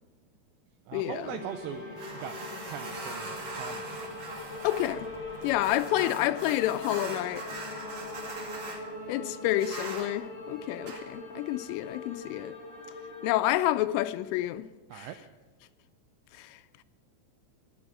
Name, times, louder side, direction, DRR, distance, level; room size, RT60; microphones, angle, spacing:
voice 1, 0.9-1.8 2.1-2.4 2.7-4.1 9.0-9.1 14.9-15.2, right 10 dB, 85° right, 2.5 m, -40 dB
sound 1, 1.2-13.5, left 2 dB, 20° left, 1.7 m, -42 dB
sound 2, 2.0-8.8 9.5-10.1 10.8-11.0, right 3 dB, 40° right, 2.4 m, -41 dB
voice 2, 4.6-5.1 5.4-7.4 9.1-12.6 13.2-14.7 15.0-15.1 16.4-16.5, left 14 dB, 85° left, 3.0 m, -29 dB
23.5 x 8.1 x 6.1 m
omnidirectional pair, 5.8 m